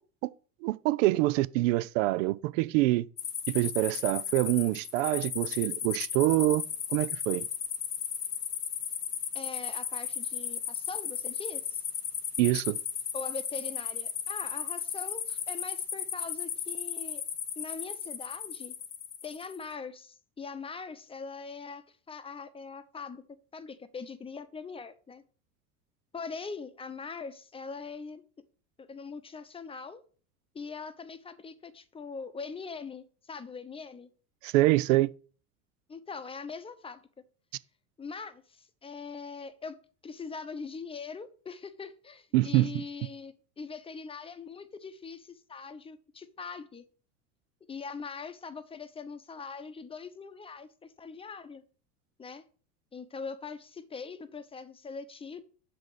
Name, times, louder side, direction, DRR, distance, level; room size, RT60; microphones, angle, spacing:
voice 1, 0.6-3.1 3.5-6.6 6.9-7.5 12.4-12.8 34.4-35.1 42.3-42.8, right 18 dB, 55° right, 0.5 m, -25 dB
sound 1, 3.2-19.6, left 8 dB, 85° left, 1.0 m, -35 dB
voice 2, 9.3-11.8 13.1-17.2 17.6-18.7 19.2-23.2 23.5-25.2 26.1-28.2 28.8-30.0 30.5-34.1 35.9-37.0 38.0-39.8 40.0-46.9 47.7-51.6 52.2-52.4 52.9-55.4, left 5 dB, 10° left, 0.8 m, -42 dB
7.4 x 6.0 x 4.9 m
hypercardioid pair, 80°, 45 cm